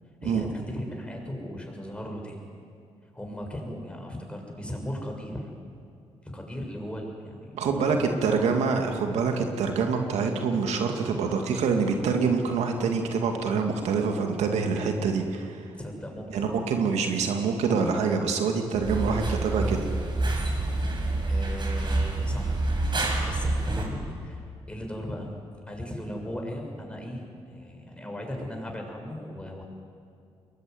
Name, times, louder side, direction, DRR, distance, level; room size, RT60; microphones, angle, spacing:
voice 1, 0.2-2.4 3.1-5.5 6.2-8.1 15.8-16.6 21.3-22.5 22.9-25.3 25.7-29.6, equal, 10° left, 1 dB, 7.2 m, -37 dB
voice 2, 7.5-15.7 16.3-19.9, right 5 dB, 80° right, 4 dB, 2.4 m, -26 dB
sound 1, 18.8-23.9, right 2 dB, 45° right, 5.7 m, -27 dB
22.5 x 20.5 x 9.7 m, 2.4 s
supercardioid pair, 60°, 11 cm